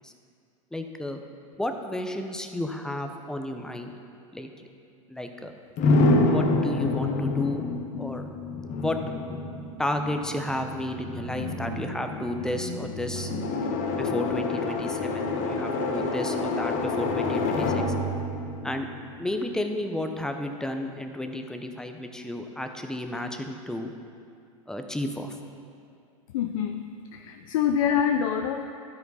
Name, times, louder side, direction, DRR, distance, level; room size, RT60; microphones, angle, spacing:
voice 1, 0.7-1.2 1.6-3.9 4.3-4.5 5.1-5.5 6.2-7.7 8.0-8.3 8.8-9.0 9.8-13.3 14.0-17.8 18.6-18.9 19.2-23.9 24.7-25.4, left 1 dB, 5° left, 5 dB, 0.6 m, -32 dB
sound 1, 5.8-19.6, left 2 dB, 45° left, 0.9 m, -28 dB
voice 2, 26.3-28.7, left 8 dB, 70° left, 5 dB, 0.5 m, -26 dB
12.5 x 4.5 x 4.1 m, 2.4 s
hypercardioid pair, 100°, 18 cm